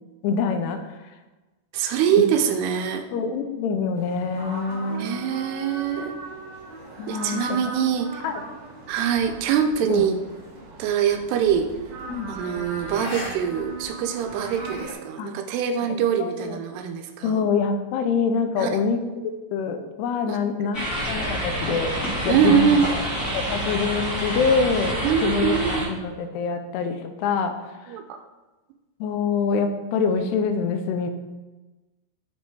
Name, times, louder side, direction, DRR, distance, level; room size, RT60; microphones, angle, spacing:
voice 1, 0.2-1.0 3.1-5.1 7.0-7.6 8.2-8.4 9.9-10.1 12.1-12.3 15.2-15.3 16.2-16.6 17.2-19.0 19.5-20.8 21.1-21.9 22.2-22.8 23.3-27.5 27.8-28.0 29.0-31.1, left 5 dB, 80° left, 7 dB, 2.6 m, -25 dB
voice 2, 1.7-3.0 5.0-6.2 7.1-8.2 8.9-10.2 10.8-11.7 12.3-17.5 18.6-18.8 20.3-20.4 22.3-22.9 25.0-26.1 27.9-28.2, right 8 dB, 80° right, 6 dB, 2.6 m, -23 dB
sound 1, 4.0-14.8, right 3 dB, 50° right, 2.7 m, -38 dB
sound 2, 11.3-11.5 12.9-13.3 13.7-13.8 14.3-14.9, left 1 dB, 50° left, 2.9 m, -36 dB
sound 3, 20.7-25.8, equal, 25° left, 2.6 m, -28 dB
7.5 x 5.7 x 4.6 m, 1.2 s
omnidirectional pair, 4.8 m